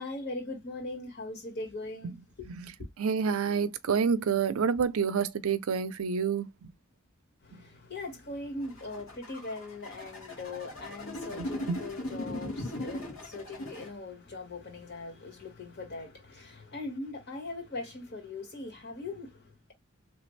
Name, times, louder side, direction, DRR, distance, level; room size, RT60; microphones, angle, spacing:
voice 1, 0.0-2.5 7.4-19.7, left 2 dB, 50° left, 1.6 m, -40 dB
voice 2, 3.0-6.7 11.4-11.8, right 6 dB, 90° right, 0.5 m, -28 dB
sound 1, 8.6-13.9, left 1 dB, 90° left, 1.7 m, -39 dB
3.4 x 2.5 x 3.2 m
head